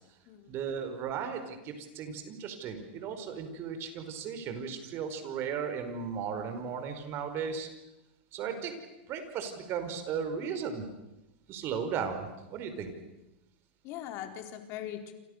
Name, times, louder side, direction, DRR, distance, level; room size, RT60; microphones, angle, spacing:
voice 1, 0.5-7.7 8.3-8.7 9.1-10.9 11.5-12.9, right 6 dB, 40° right, 8 dB, 5.2 m, -36 dB
voice 2, 13.8-15.1, left 11 dB, 45° left, 6 dB, 4.5 m, -41 dB
28.0 x 28.0 x 6.7 m, 0.97 s
supercardioid pair, 130°, 6 cm